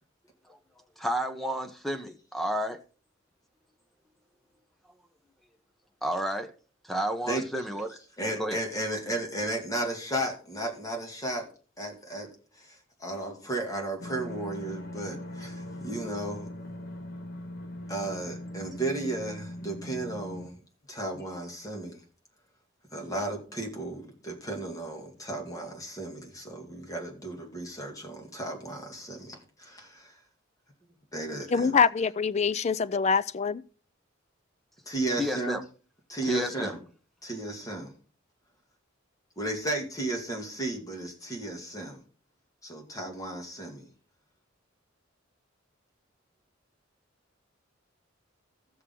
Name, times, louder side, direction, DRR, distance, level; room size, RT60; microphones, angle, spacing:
voice 1, 1.0-2.8 6.0-6.5 6.8-8.0 8.4-8.6 35.2-35.6 36.2-36.8, equal, ahead, 0.9 m, -31 dB
voice 2, 8.2-11.5 11.8-16.5 17.9-20.6 20.9-22.0 22.9-30.2 31.1-31.7 34.9-35.6 36.1-36.8 37.2-37.9 39.4-42.0 42.6-43.9, right 1 dB, 20° left, 2.1 m, -34 dB
sound 1, 14.0-20.5, left 1 dB, 55° left, 1.4 m, -40 dB
voice 3, 31.5-33.6, left 5 dB, 35° left, 0.4 m, -24 dB
15.5 x 6.6 x 3.8 m
head